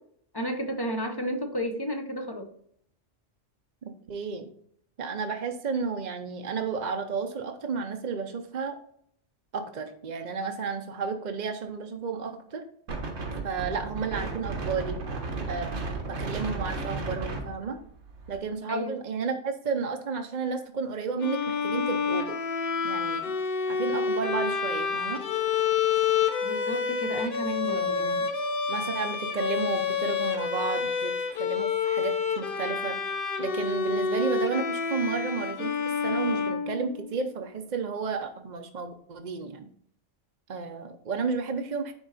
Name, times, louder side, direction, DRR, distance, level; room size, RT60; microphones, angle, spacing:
voice 1, 0.3-2.5 18.7-18.9 26.4-28.3, equal, 25° left, 6 dB, 0.6 m, -32 dB
voice 2, 4.1-4.5 5.0-8.8 9.5-12.6 13.4-15.0 15.5-17.8 18.3-22.3 22.8-23.3 23.7-25.2 27.7-28.1 28.7-33.0 33.4-35.7 36.0-39.7 40.5-41.9, right 5 dB, 45° right, 4 dB, 0.7 m, -32 dB
Wind, 12.9-18.4, right 3 dB, 90° right, 1.7 m, -34 dB
Bowed string instrument, 21.2-37.3, left 6 dB, 50° left, 0.9 m, -28 dB
9.8 x 4.0 x 4.0 m, 0.66 s
omnidirectional pair, 1.3 m